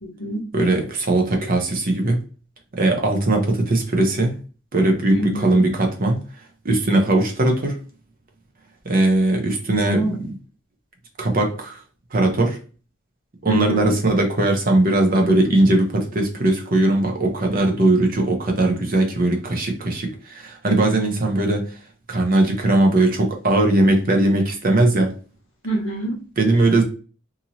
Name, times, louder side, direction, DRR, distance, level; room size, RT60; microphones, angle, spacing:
voice 1, 0.0-0.4 5.0-5.6 9.8-10.2 13.4-13.9 25.6-26.2, right 1 dB, 75° left, 1.0 m, -26 dB
voice 2, 0.5-2.2 2.8-4.3 4.7-6.2 6.6-7.8 8.8-10.3 11.2-11.8 12.1-12.6 13.4-21.7 22.1-25.1 26.4-26.8, right 2 dB, 45° right, 0.7 m, -19 dB
2.8 x 2.7 x 2.6 m
head